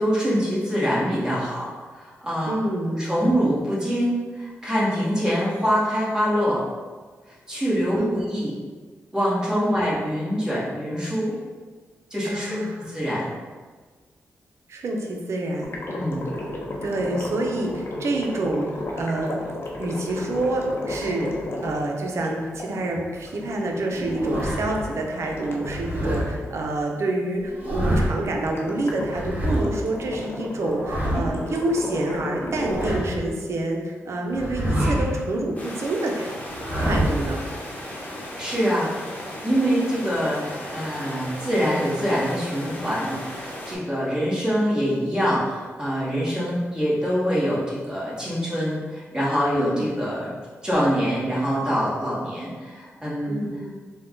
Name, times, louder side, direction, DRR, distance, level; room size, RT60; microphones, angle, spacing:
voice 1, 0.0-1.7 1.9-2.5 3.0-4.1 4.4-6.6 7.5-8.5 9.1-11.3 12.1-12.6 12.9-13.3 15.9-16.2 38.4-39.0 39.4-50.3 50.6-53.5, equal, 15° right, -7 dB, 1.4 m, -24 dB
voice 2, 2.5-3.1 8.0-8.3 9.5-9.9 12.2-12.9 14.7-15.8 16.8-19.4 19.8-36.3 36.8-37.4 49.6-49.9 53.3-53.7, right 2 dB, 65° right, 1 dB, 0.6 m, -27 dB
sound 1, 15.6-26.5 28.4-32.9, left 1 dB, 55° left, 0.7 m, -34 dB
sound 2, 23.9-24.8 25.6-26.2 27.4-28.3 29.1-29.7 30.6-31.4 32.3-33.2 34.3-35.2 36.4-37.3, right 1 dB, 35° right, 1.3 m, -26 dB
sound 3, 35.6-43.8, left 1 dB, 30° left, 1.0 m, -36 dB
3.5 x 2.3 x 3.7 m, 1.4 s
cardioid pair, 60°, 5 cm